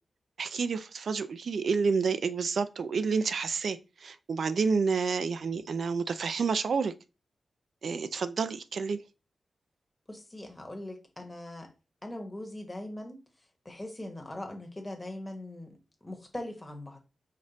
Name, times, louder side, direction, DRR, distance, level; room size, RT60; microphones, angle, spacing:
voice 1, 0.4-6.9 7.8-9.0, right 5 dB, 70° right, 0.4 m, -29 dB
voice 2, 10.1-11.7 12.0-13.2 13.6-17.0, left 1 dB, 15° left, 1.2 m, -41 dB
5.2 x 2.6 x 3.9 m
wide cardioid pair, 95°, 0 cm